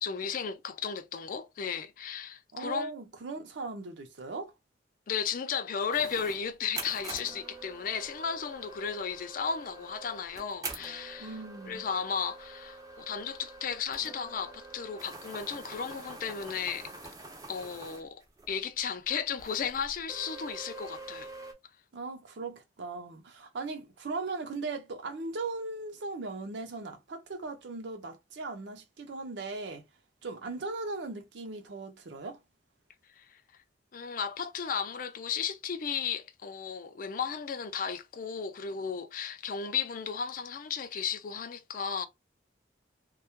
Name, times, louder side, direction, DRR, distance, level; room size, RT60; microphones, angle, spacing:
voice 1, 0.0-2.9 5.1-11.4 11.7-16.9 17.5-18.2 18.5-21.3 33.2-33.4 33.9-42.1, left 6 dB, 45° left, 0.3 m, -34 dB
voice 2, 2.5-4.5 11.2-11.9 21.9-29.9 30.2-32.4, right 3 dB, 70° right, 0.5 m, -38 dB
sound 1, 5.9-18.5 18.8-18.9 19.4-21.5, right 3 dB, 20° right, 0.4 m, -45 dB
2.2 x 2.1 x 2.9 m
head